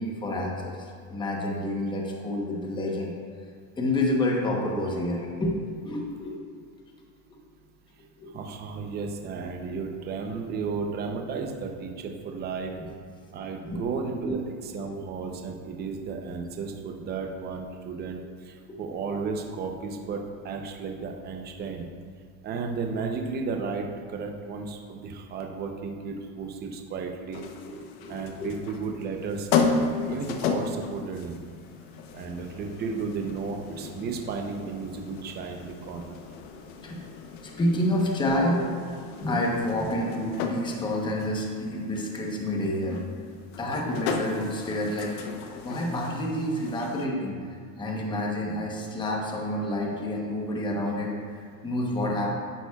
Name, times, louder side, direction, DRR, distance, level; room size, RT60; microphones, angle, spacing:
voice 1, 0.0-3.1 3.8-6.4 7.3-7.4 8.2-8.3 13.6-13.8 14.2-14.4 14.9-15.0 27.6-28.5 29.9-30.0 36.8-37.0 37.4-38.7 39.2-43.0 43.6-45.2 45.5-52.4, left 1 dB, 10° left, -1 dB, 0.9 m, -29 dB
voice 2, 8.3-12.7 13.3-21.8 22.4-27.4 28.1-29.7 30.1-31.4 32.1-36.2, right 4 dB, 20° right, 3 dB, 0.7 m, -34 dB
sound 1, 27.3-47.1, left 5 dB, 60° left, 1.0 m, -34 dB
11.5 x 8.8 x 2.3 m, 2.1 s
supercardioid pair, 145°, 50 cm